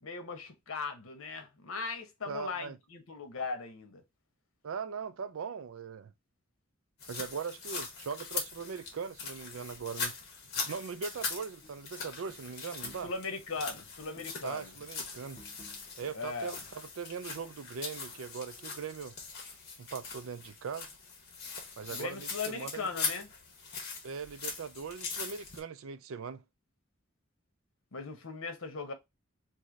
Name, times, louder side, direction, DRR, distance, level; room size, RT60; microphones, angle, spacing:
voice 1, 0.0-4.0 13.0-14.7 16.1-16.6 21.9-23.3 27.9-28.9, left 4 dB, 85° left, 0.9 m, -38 dB
voice 2, 2.3-2.8 4.6-6.1 7.1-10.1 10.6-13.1 14.4-15.4 16.0-19.1 19.8-20.9 21.8-22.9 24.0-26.4, right 6 dB, 75° right, 0.4 m, -40 dB
sound 1, 7.0-25.6, left 4 dB, 55° left, 1.3 m, -41 dB
sound 2, 11.6-11.9 12.3-13.3 13.6-14.5 14.8-17.0, equal, 30° left, 1.3 m, -58 dB
3.1 x 2.7 x 3.8 m
head